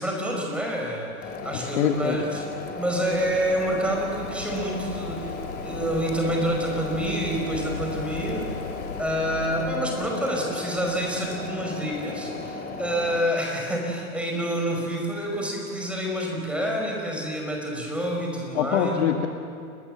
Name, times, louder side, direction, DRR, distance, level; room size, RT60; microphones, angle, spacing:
voice 1, 0.0-2.4 2.7-5.3 5.6-8.5 9.0-19.0, equal, 5° right, 0 dB, 5.1 m, -28 dB
sound 1, 1.2-13.2, left 3 dB, 20° left, 2.7 m, -36 dB
voice 2, 1.5-2.2 18.5-19.3, left 9 dB, 50° left, 4 dB, 1.8 m, -24 dB
Waves surf, 2.5-10.2, left 7 dB, 70° left, 1.8 m, -39 dB
30.0 x 20.0 x 7.7 m, 2.3 s
hypercardioid pair, 130°, 44 cm